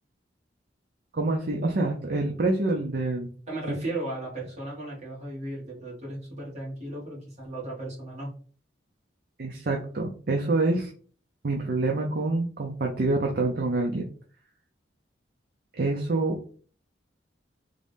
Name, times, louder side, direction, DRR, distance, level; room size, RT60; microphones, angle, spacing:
voice 1, 1.1-3.3 3.7-3.8 9.4-10.9 11.4-14.1 15.8-16.4, right 2 dB, 55° right, 1 dB, 0.6 m, -26 dB
voice 2, 3.5-8.3, right 2 dB, 40° right, -6 dB, 1.9 m, -35 dB
3.7 x 2.7 x 3.5 m, 0.42 s
head